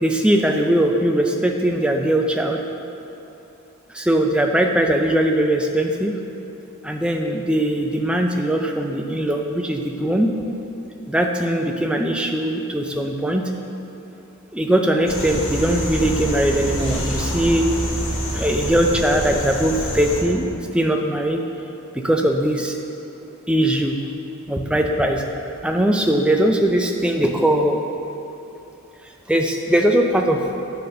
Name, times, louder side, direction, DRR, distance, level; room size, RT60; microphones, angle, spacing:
voice 1, 0.0-2.6 3.9-6.2 6.8-10.3 11.1-13.5 14.5-17.7 18.3-20.4 20.7-21.4 21.9-22.8 23.5-24.0 24.5-25.2 25.6-27.8 29.3-30.5, right 1 dB, 5° right, 2 dB, 0.4 m, -20 dB
sound 1, 15.1-20.2, equal, 60° left, 1.5 m, -26 dB
9.1 x 4.2 x 6.4 m, 3.0 s
head